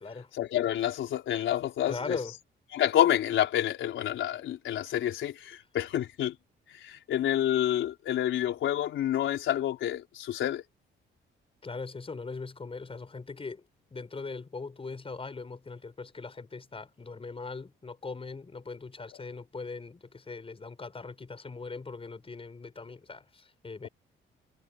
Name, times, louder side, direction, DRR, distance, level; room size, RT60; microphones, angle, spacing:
voice 1, 0.4-2.2 2.7-6.4 6.7-10.6 23.8-23.9, left 11 dB, 75° left, 4.2 m, -28 dB
voice 2, 1.8-2.3 11.6-13.6 13.9-23.9, left 4 dB, 30° left, 5.3 m, -40 dB
cardioid pair, 90°, 20 cm